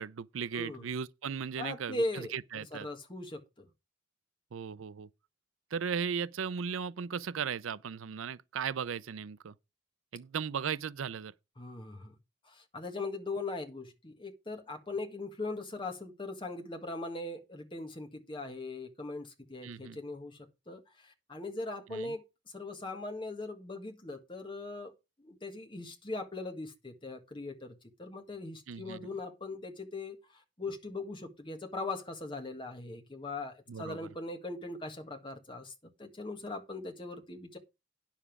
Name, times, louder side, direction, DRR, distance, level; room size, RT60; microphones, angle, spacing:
voice 1, 0.0-2.9 4.5-5.1 5.7-9.5 10.1-11.3 19.6-20.0 21.9-22.1 28.7-29.0 33.7-34.1, right 7 dB, 80° right, 0.5 m, -37 dB
voice 2, 0.5-0.9 1.6-3.7 11.6-12.1 12.4-24.9 25.2-35.7 36.0-37.6, left 2 dB, 25° left, 1.7 m, -40 dB
9.9 x 7.2 x 4.7 m
head